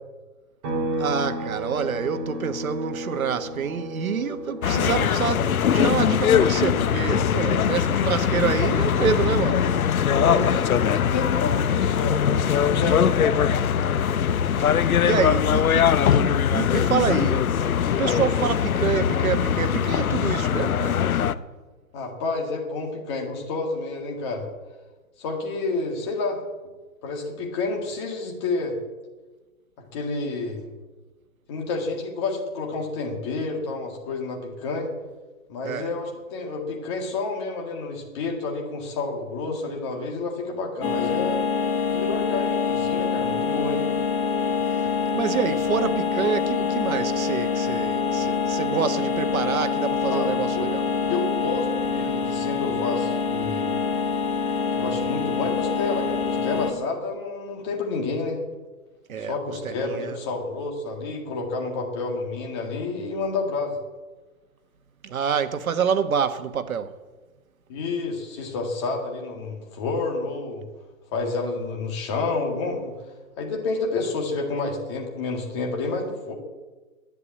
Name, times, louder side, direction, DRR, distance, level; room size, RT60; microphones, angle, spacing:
sound 1, 0.6-14.2 14.5-16.7, equal, 25° right, 3.0 m, -36 dB
voice 1, 1.0-5.4 5.7-9.7 14.6-14.7 15.0-17.5 18.0-21.0 35.6-35.9 45.1-50.9 59.1-59.4 59.6-60.2 65.0-66.9, right 7 dB, 80° right, 1.3 m, -27 dB
sound 2, 4.6-21.3, left 8 dB, 90° left, 0.8 m, -21 dB
voice 2, 4.6-5.1 5.4-5.5 10.1-13.4 21.9-24.5 25.2-26.4 27.0-28.8 29.8-30.7 31.5-34.9 35.5-41.4 41.9-43.8 50.1-50.7 51.1-53.7 54.7-58.4 59.2-63.8 67.7-70.7 71.1-72.9 73.4-76.3, left 3 dB, 20° left, 2.0 m, -29 dB
sound 3, 40.8-56.7, left 5 dB, 40° left, 2.2 m, -25 dB
11.0 x 9.8 x 8.5 m
hypercardioid pair, 170°, 41 cm